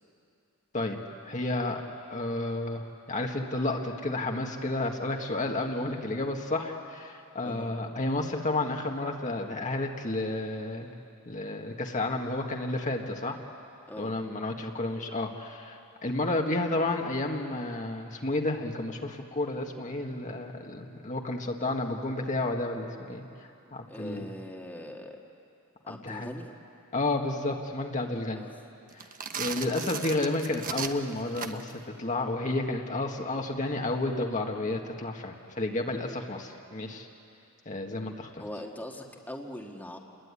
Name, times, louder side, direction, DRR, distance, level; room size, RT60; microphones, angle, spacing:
voice 1, 1.2-1.8 2.1-10.9 11.3-13.4 14.0-23.2 23.7-24.3 25.9-26.3 26.9-28.4 29.4-37.1 37.7-38.3, left 2 dB, 35° left, 2 dB, 1.7 m, -31 dB
voice 2, 23.9-25.3 25.8-26.5 28.3-28.5 38.4-40.0, left 1 dB, 10° left, 0 dB, 1.7 m, -41 dB
sound 1, 28.9-31.8, right 6 dB, 40° right, 1.2 m, -36 dB
28.5 x 21.0 x 9.8 m, 2.7 s
head